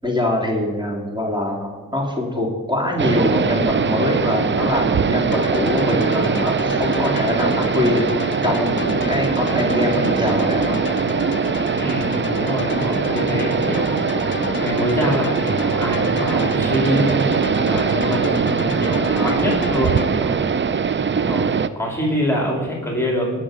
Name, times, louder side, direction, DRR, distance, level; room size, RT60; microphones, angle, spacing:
voice 1, 0.0-8.1 8.4-10.8 19.0-19.4, left 1 dB, 15° right, -1 dB, 3.4 m, -23 dB
sound 1, 3.0-21.7, right 6 dB, 35° right, 0.6 m, -21 dB
sound 2, 5.3-20.1, left 7 dB, 40° left, 0.6 m, -31 dB
voice 2, 11.8-23.3, equal, 10° left, -1 dB, 3.1 m, -25 dB
19.0 x 6.6 x 5.1 m, 1.4 s
supercardioid pair, 50°, 31 cm